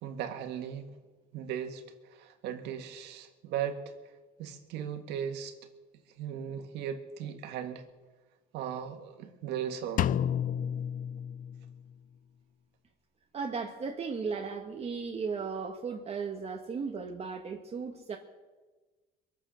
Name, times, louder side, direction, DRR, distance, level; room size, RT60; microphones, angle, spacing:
voice 1, 0.0-0.9 1.3-1.8 2.1-3.9 4.4-5.5 6.2-7.8 8.5-10.2, right 9 dB, 85° right, 1.9 m, -37 dB
Drum, 10.0-11.9, left 9 dB, 55° left, 0.5 m, -31 dB
voice 2, 13.3-18.2, right 5 dB, 40° right, 1.5 m, -36 dB
22.5 x 8.1 x 6.5 m
cardioid pair, 110°, 17 cm